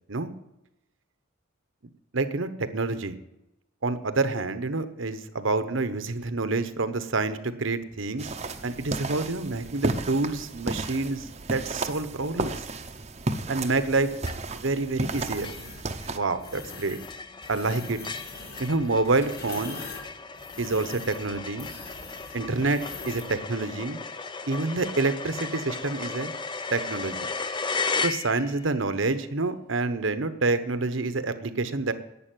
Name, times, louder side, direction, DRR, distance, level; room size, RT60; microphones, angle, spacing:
voice 1, 2.1-3.2 3.8-8.3 8.6-12.5 13.5-14.1 14.5-15.5 16.1-17.0 17.5-18.0 18.6-19.8 20.6-21.7 22.3-24.0 24.5-26.3 26.7-27.3 28.0-31.9, right 3 dB, 65° right, 11 dB, 1.0 m, -27 dB
sound 1, 8.2-16.2, right 2 dB, 30° right, 0.8 m, -33 dB
sound 2, 14.3-14.7 15.1-15.2 15.4-28.7, left 4 dB, 20° left, 0.6 m, -35 dB
sound 3, 15.1-15.8 16.4-17.1 17.4-23.3, left 3 dB, 45° left, 2.9 m, -43 dB
11.5 x 8.6 x 9.1 m, 0.89 s
head